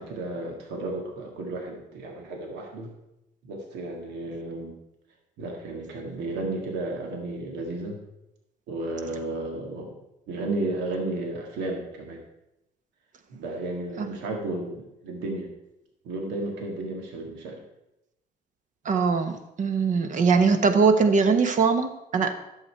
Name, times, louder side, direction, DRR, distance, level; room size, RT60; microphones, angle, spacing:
voice 1, 0.0-2.9 3.4-4.8 5.4-8.0 8.7-10.0 10.3-12.2 13.3-15.5 16.0-17.6, right 2 dB, 85° right, 1 dB, 1.9 m, -33 dB
voice 2, 18.8-22.3, right 5 dB, 50° right, 7 dB, 1.2 m, -21 dB
11.0 x 7.7 x 4.6 m, 0.88 s
cardioid pair, 110°, 17 cm